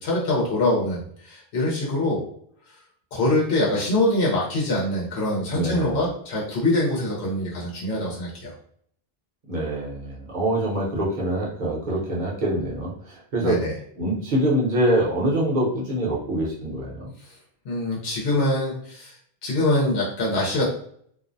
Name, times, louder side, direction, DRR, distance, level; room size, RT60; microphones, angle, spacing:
voice 1, 0.0-2.2 3.1-8.5 13.4-13.7 17.6-19.1 19.4-20.6, left 1 dB, 75° left, -4 dB, 1.0 m, -24 dB
voice 2, 5.5-6.1 9.5-13.6 14.0-17.1, right 1 dB, 50° right, -4 dB, 0.8 m, -25 dB
2.5 x 2.0 x 2.5 m, 0.62 s
omnidirectional pair, 1.1 m